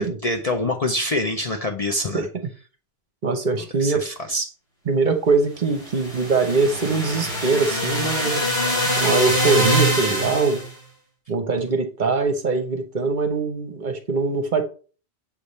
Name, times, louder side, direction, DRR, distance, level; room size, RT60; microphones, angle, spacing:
voice 1, 0.0-2.3 3.6-4.5, left 1 dB, 40° left, 0.6 m, -26 dB
voice 2, 3.2-4.0 4.9-8.4 9.0-10.6 11.3-14.6, right 4 dB, 45° right, 0.9 m, -22 dB
sound 1, 5.8-10.7, equal, 70° left, 4.3 m, -23 dB
7.2 x 3.4 x 4.1 m
omnidirectional pair, 1.2 m